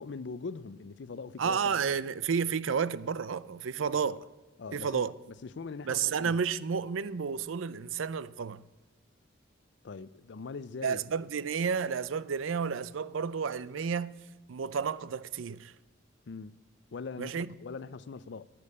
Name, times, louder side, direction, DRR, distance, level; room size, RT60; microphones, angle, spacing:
voice 1, 0.0-1.9 3.8-4.1 4.6-5.0 5.4-6.4 9.8-11.0 16.3-16.6 16.9-18.5, left 4 dB, 60° left, 0.5 m, -42 dB
voice 2, 1.4-4.3 4.7-5.1 5.9-8.6 10.8-14.2 14.5-15.7 17.2-17.5, right 6 dB, 85° right, 0.5 m, -31 dB
12.0 x 8.7 x 8.5 m
head